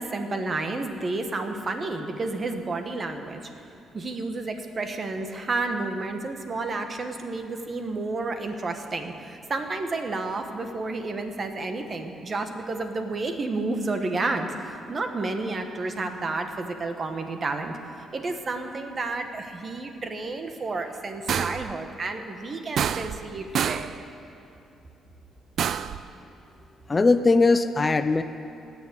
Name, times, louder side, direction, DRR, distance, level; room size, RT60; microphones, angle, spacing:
voice 1, 0.0-3.4 3.9-23.8, right 3 dB, 40° right, 6 dB, 1.4 m, -31 dB
sound 1, 21.3-21.7 22.8-23.3 23.6-24.0 25.6-26.0, right 8 dB, 65° right, 0.4 m, -27 dB
voice 2, 26.9-28.2, left 3 dB, 30° left, 11 dB, 0.5 m, -20 dB
18.5 x 7.3 x 8.2 m, 2.7 s
cardioid pair, 90°, 0 cm